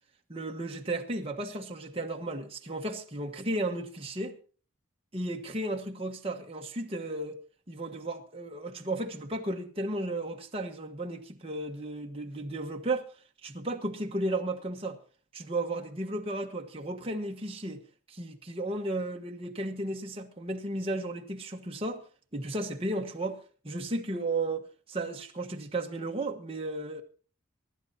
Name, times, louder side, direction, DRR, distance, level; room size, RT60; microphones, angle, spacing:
voice 1, 0.3-4.4 5.1-7.4 7.7-13.0 13.4-15.0 15.3-17.8 18.1-22.0 22.3-27.0, right 2 dB, 25° right, 1.3 m, -34 dB
25.5 x 11.5 x 2.8 m
head